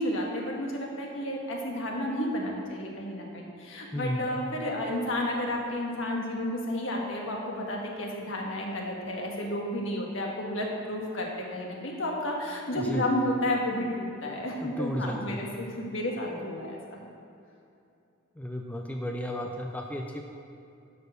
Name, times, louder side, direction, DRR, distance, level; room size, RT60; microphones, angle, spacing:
voice 1, 0.0-17.1, left 1 dB, 65° left, -1 dB, 1.6 m, -31 dB
voice 2, 3.9-4.3 12.8-13.1 14.6-15.4 18.4-20.2, equal, 5° left, 1 dB, 0.5 m, -33 dB
12.0 x 4.5 x 6.5 m, 2.6 s
head